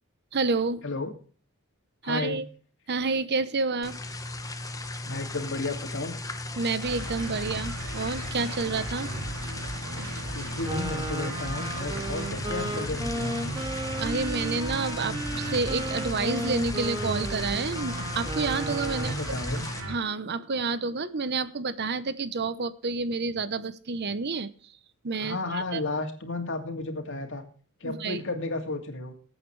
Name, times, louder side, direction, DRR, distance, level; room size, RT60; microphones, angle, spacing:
voice 1, 0.3-0.8 2.0-2.5 2.9-4.0 6.6-9.1 14.0-19.4 19.9-24.5 25.0-25.8 27.8-28.2, right 4 dB, 50° right, 15 dB, 0.8 m, -29 dB
voice 2, 2.0-2.4 5.0-6.1 10.3-13.4 18.9-19.6 25.2-27.4 27.8-29.1, left 2 dB, 60° left, 5 dB, 2.5 m, -33 dB
sound 1, 3.8-19.8, left 2 dB, 15° left, 1.2 m, -37 dB
sound 2, 6.8-20.0, right 2 dB, 70° right, 2.8 m, -37 dB
Wind instrument woodwind instrument, 10.6-19.3, right 1 dB, 20° right, 1.9 m, -35 dB
20.0 x 8.8 x 3.3 m, 0.41 s
head